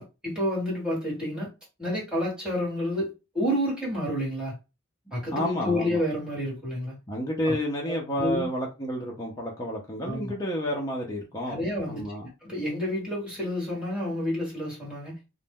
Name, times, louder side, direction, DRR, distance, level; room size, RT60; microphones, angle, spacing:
voice 1, 0.0-1.5 1.8-4.5 5.1-6.9 7.5-7.6 8.2-8.5 10.0-10.3 11.5-12.1 12.4-15.2, left 1 dB, 5° right, 1.4 m, -29 dB
voice 2, 5.3-6.0 7.1-11.6 11.9-12.3, equal, 15° left, 0.5 m, -30 dB
2.5 x 2.1 x 3.5 m
head